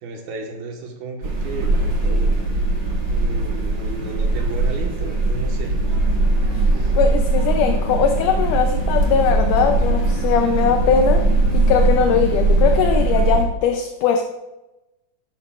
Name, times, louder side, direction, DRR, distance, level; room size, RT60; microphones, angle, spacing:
voice 1, 0.0-2.4 3.1-5.8, right 4 dB, 80° right, 1 dB, 3.3 m, -33 dB
sound 1, 1.2-13.4, right 2 dB, 45° right, 2.8 m, -20 dB
voice 2, 7.0-11.2 11.5-14.2, left 7 dB, 75° left, 4 dB, 2.0 m, -20 dB
12.0 x 12.0 x 2.5 m, 1.0 s
omnidirectional pair, 4.2 m